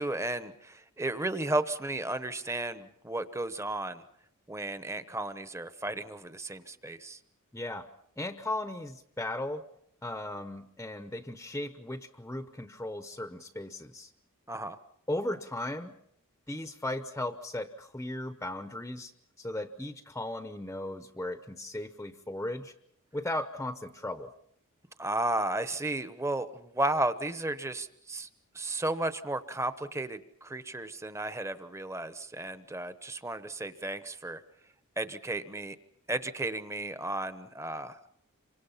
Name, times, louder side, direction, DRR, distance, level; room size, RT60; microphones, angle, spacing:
voice 1, 0.0-4.0 4.5-7.2 14.5-14.8 25.0-28.3 28.5-34.4 35.0-35.7 36.1-38.0, right 2 dB, 15° right, 11 dB, 1.0 m, -33 dB
voice 2, 7.5-7.9 8.2-9.6 10.0-14.1 15.1-16.0 16.5-19.1 19.4-22.7 23.1-24.3, left 1 dB, 10° left, 9 dB, 0.9 m, -36 dB
27.5 x 25.0 x 5.7 m, 0.74 s
head